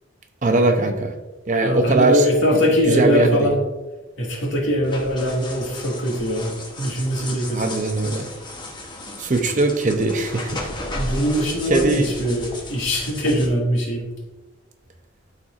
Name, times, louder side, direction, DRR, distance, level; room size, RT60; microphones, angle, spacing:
voice 1, 0.4-1.1 1.5-2.2 2.5-2.6 2.9-3.5 7.5-8.3 9.2-10.6 11.7-12.1, right 2 dB, 40° right, 6 dB, 0.7 m, -20 dB
voice 2, 1.6-3.6 4.2-6.5 6.8-7.6 10.9-14.1, equal, 65° left, -2 dB, 2.0 m, -21 dB
sound 1, 4.8-13.5, left 2 dB, 25° left, 1.0 m, -34 dB
12.5 x 4.3 x 2.5 m, 1.1 s
head